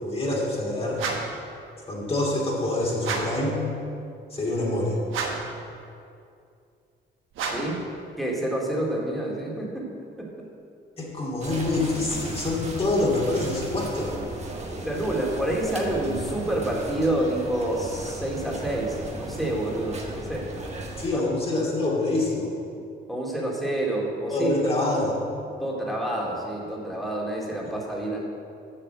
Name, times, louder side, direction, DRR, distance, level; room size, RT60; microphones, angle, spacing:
voice 1, 0.0-1.0 1.9-3.6 4.3-5.0 11.0-14.2 21.0-22.5 24.3-25.2 27.6-27.7, left 2 dB, 30° left, -3 dB, 2.7 m, -26 dB
sound 1, 1.0-1.4 3.0-3.5 5.1-5.6 7.3-7.8, right 4 dB, 80° right, 1.3 m, -30 dB
voice 2, 7.5-7.8 8.2-9.9 10.2-10.3 14.8-20.5 21.1-21.3 23.1-24.5 25.6-28.2, right 1 dB, ahead, -3 dB, 2.5 m, -28 dB
sound 2, 11.4-21.1, right 2 dB, 35° right, 1.5 m, -36 dB
7.7 x 6.5 x 7.5 m, 2.5 s
cardioid pair, 90°, 20 cm